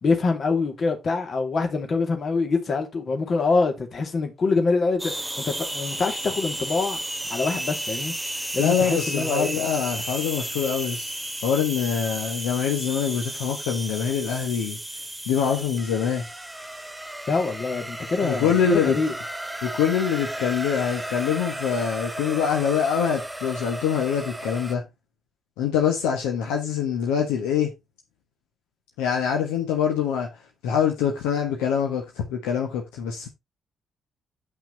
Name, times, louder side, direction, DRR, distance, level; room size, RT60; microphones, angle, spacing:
voice 1, 0.0-7.0 7.3-8.1 8.5-9.6 17.3-19.1, left 4 dB, 50° left, 2.7 m, -25 dB
sound 1, 5.0-24.7, right 1 dB, 10° right, 1.9 m, -33 dB
voice 2, 8.6-11.1 11.4-14.8 15.3-16.2 18.2-19.0 19.6-24.8 25.6-27.7 29.0-30.3 30.6-33.3, left 8 dB, 75° left, 1.4 m, -24 dB
9.5 x 5.9 x 4.0 m
figure-of-eight pair, 40°, 0 cm